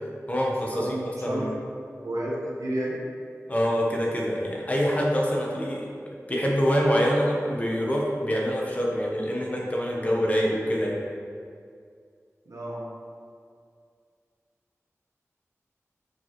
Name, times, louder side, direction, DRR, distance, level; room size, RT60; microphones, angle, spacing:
voice 1, 0.3-0.9 1.2-1.5 3.5-5.9 6.3-11.0, equal, 25° left, -3 dB, 1.1 m, -25 dB
voice 2, 2.0-3.0 12.5-12.8, right 1 dB, 90° right, -5 dB, 1.3 m, -30 dB
6.8 x 5.0 x 3.1 m, 2.2 s
wide cardioid pair, 75°, 5 cm